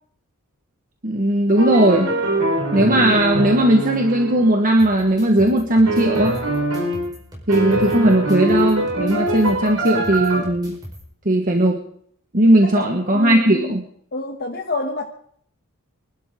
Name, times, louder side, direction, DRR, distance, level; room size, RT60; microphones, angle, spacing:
voice 1, 1.0-2.1 2.7-6.4 7.5-10.8 11.2-11.8 12.3-13.8, right 1 dB, 40° right, 2 dB, 1.6 m, -17 dB
sound 1, 1.6-4.6 5.9-7.1 7.5-10.4, right 2 dB, 90° right, 4.7 m, -23 dB
sound 2, 4.8-11.0, equal, 20° right, 5.1 m, -40 dB
voice 2, 12.6-13.8 14.1-15.0, left 2 dB, 45° left, 2 dB, 1.3 m, -28 dB
25.5 x 12.0 x 3.8 m, 0.63 s
head